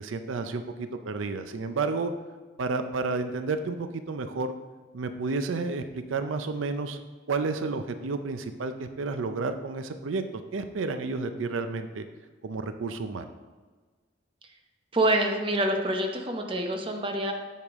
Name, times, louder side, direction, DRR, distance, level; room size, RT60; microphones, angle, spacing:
voice 1, 0.0-2.1 2.6-4.5 4.9-7.0 7.3-10.2 10.5-12.0 12.4-13.3, right 3 dB, 90° right, 9 dB, 0.5 m, -31 dB
voice 2, 14.9-17.3, right 1 dB, 25° right, 3 dB, 0.8 m, -26 dB
8.3 x 6.6 x 3.6 m, 1.4 s
head